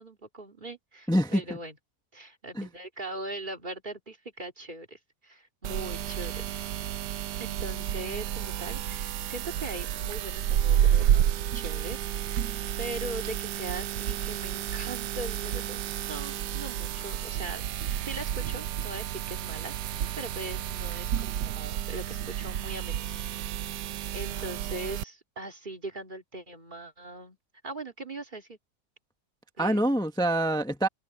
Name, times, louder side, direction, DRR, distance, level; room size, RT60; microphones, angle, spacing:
voice 1, 0.0-1.8 2.1-6.6 7.4-17.6 18.0-23.1 23.6-27.4 27.6-28.6 29.6-29.8, right 2 dB, 25° right, 2.6 m, -40 dB
voice 2, 1.1-1.4 2.5-2.7 29.6-30.9, right 1 dB, 5° left, 1.1 m, -25 dB
sound 1, 5.6-25.0, right 11 dB, 80° right, 1.3 m, -30 dB
omnidirectional pair, 1.8 m